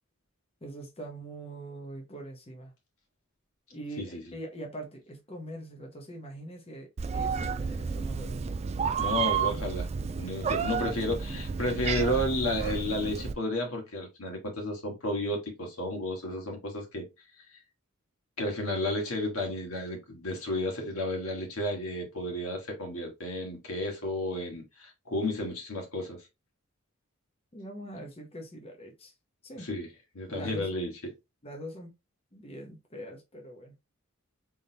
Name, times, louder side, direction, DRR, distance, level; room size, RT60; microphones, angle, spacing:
voice 1, 0.6-2.7 3.7-8.5 27.5-29.1 29.4-29.7 30.3-30.9 31.4-31.9 32.3-33.7, right 1 dB, 30° left, 0.8 m, -43 dB
Meow, 7.0-13.3, right 6 dB, 30° right, 0.3 m, -31 dB
voice 2, 9.0-17.1 18.4-26.2 29.6-29.9 30.1-30.9, left 1 dB, 75° left, 1.7 m, -32 dB
3.9 x 3.6 x 2.7 m
head